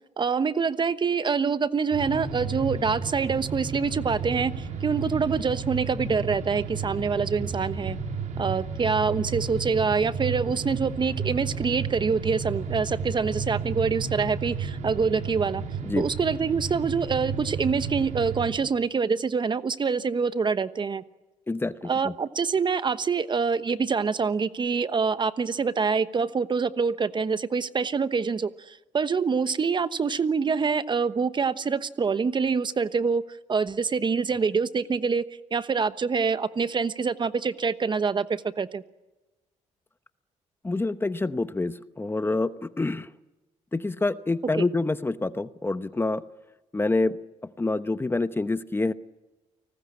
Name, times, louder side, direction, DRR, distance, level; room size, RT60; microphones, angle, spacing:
voice 1, 0.2-8.0 8.4-15.6 16.0-21.0 21.8-33.2 33.5-38.8, right 5 dB, 35° right, 13 dB, 1.1 m, -26 dB
sound 1, 1.9-18.5, right 5 dB, 80° right, 4.1 m, -32 dB
voice 2, 21.5-22.1 40.6-43.1 43.7-46.2 46.7-47.2 47.4-48.9, left 2 dB, 15° left, 13 dB, 0.9 m, -27 dB
29.5 x 19.5 x 8.6 m, 1.1 s
cardioid pair, 80°, 13 cm